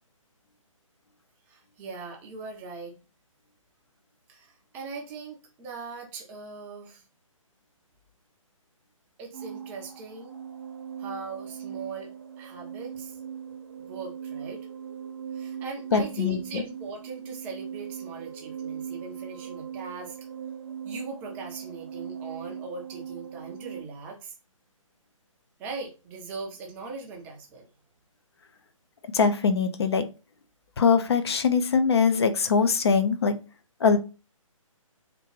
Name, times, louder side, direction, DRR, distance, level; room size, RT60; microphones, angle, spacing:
voice 1, 1.5-2.9 4.3-7.0 9.2-10.4 11.0-12.1 12.4-13.2 13.9-14.6 15.3-20.2 20.8-24.3 25.6-27.7, right 4 dB, 10° right, -1 dB, 0.4 m, -40 dB
sound 1, 9.3-23.8, right 8 dB, 45° right, 0.7 m, -39 dB
voice 2, 15.9-16.6 29.1-30.1 30.8-33.4 33.8-34.0, left 5 dB, 50° left, 9 dB, 0.5 m, -22 dB
3.5 x 2.4 x 3.1 m, 0.32 s
figure-of-eight pair, 140°, 18 cm